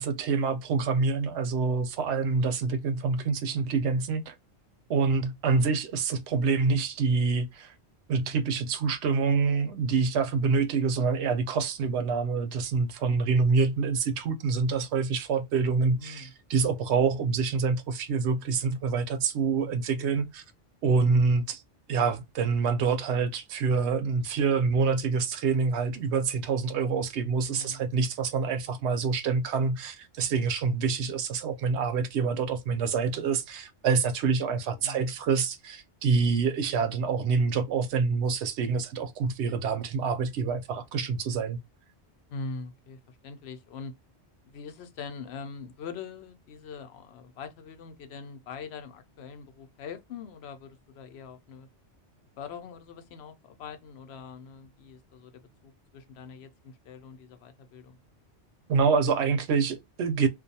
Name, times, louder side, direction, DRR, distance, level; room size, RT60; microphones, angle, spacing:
voice 1, 0.0-4.3 4.9-7.7 8.1-20.4 20.8-21.6 21.9-41.6 58.7-60.3, right 5 dB, 75° right, 0.8 m, -26 dB
voice 2, 15.9-16.3 27.5-27.9 34.8-35.1 42.3-43.9 44.4-51.7 52.4-58.0, left 5 dB, 70° left, 0.8 m, -43 dB
2.4 x 2.2 x 2.6 m
omnidirectional pair, 1.2 m